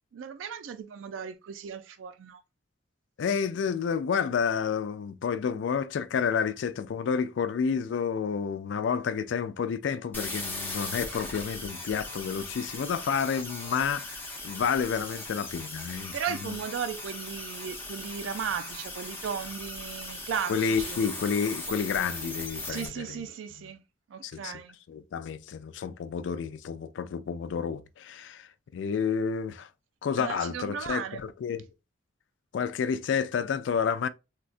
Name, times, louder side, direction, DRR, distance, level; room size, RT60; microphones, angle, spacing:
voice 1, 0.1-2.4 15.9-21.0 22.7-23.8 24.1-24.8 30.2-31.2, right 7 dB, 90° right, 0.3 m, -36 dB
voice 2, 3.2-16.2 16.4-16.6 20.5-23.2 24.2-24.5 24.9-29.7 30.0-31.7 32.5-34.1, left 6 dB, 70° left, 0.3 m, -30 dB
sound 1, 10.1-22.9, left 2 dB, 10° left, 0.7 m, -39 dB
3.8 x 2.2 x 2.4 m
head